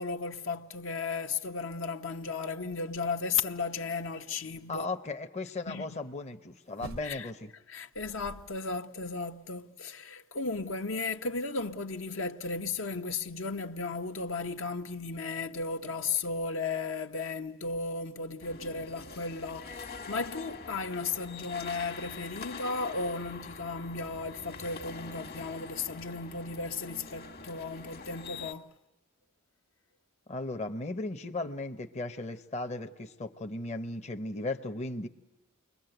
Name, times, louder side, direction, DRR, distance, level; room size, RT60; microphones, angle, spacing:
voice 1, 0.0-4.9 5.7-5.9 7.0-7.3 7.7-28.7, left 4 dB, 70° left, 1.0 m, -35 dB
voice 2, 4.7-7.5 30.3-35.1, left 2 dB, 35° left, 0.8 m, -36 dB
sound 1, 6.8-7.5 7.9-8.7 9.1-9.2, right 2 dB, 80° right, 0.9 m, -46 dB
sound 2, 18.4-28.5, left 4 dB, 50° left, 1.5 m, -44 dB
29.5 x 22.5 x 7.9 m
head